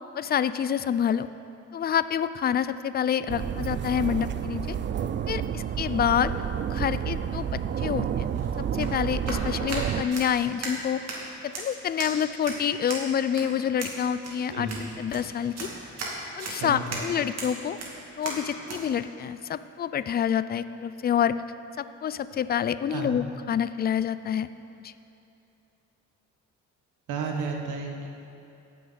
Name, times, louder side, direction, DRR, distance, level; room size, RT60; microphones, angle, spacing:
voice 1, 0.1-1.3 1.7-4.7 5.3-6.3 6.7-8.3 8.6-11.0 11.4-14.7 15.0-15.7 16.4-17.8 18.2-21.4 21.8-24.5 24.8-24.9, left 8 dB, 35° left, 14 dB, 0.4 m, -27 dB
sound 1, 3.3-10.0, right 9 dB, 40° right, 0.4 m, -30 dB
sound 2, 8.2-18.8, right 2 dB, 55° right, 2.3 m, -37 dB
voice 2, 16.6-17.0 22.9-23.2 27.1-28.1, right 4 dB, 80° right, 1 dB, 1.4 m, -32 dB
17.0 x 6.2 x 4.0 m, 2.7 s
cardioid pair, 90°, 30 cm